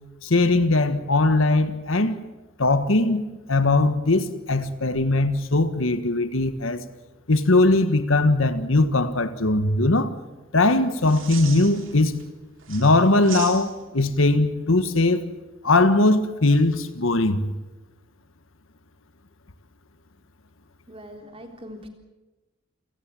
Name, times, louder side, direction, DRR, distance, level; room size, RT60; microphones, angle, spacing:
voice 1, 0.2-2.1 2.6-3.2 3.5-6.8 7.3-10.1 10.5-12.2 12.7-15.2 15.6-17.5, left 2 dB, 75° left, 1.5 m, -20 dB
sound 1, 10.9-12.2 12.6-14.0 16.5-16.9, right 8 dB, 70° right, 3.5 m, -38 dB
voice 2, 20.9-21.9, equal, 30° right, 3.6 m, -41 dB
28.5 x 17.5 x 7.7 m
head